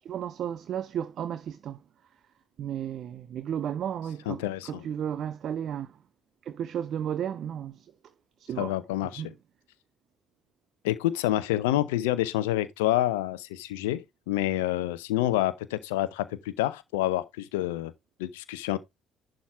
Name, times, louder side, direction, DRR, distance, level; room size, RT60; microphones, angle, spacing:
voice 1, 0.0-1.8 2.6-5.9 6.4-7.9 8.4-8.7 9.2-9.3, right 9 dB, 50° right, 0.6 m, -33 dB
voice 2, 4.3-4.8 8.6-9.3 10.8-17.9 18.2-18.8, left 14 dB, 75° left, 0.6 m, -28 dB
11.0 x 3.8 x 4.5 m
figure-of-eight pair, 50°, 0 cm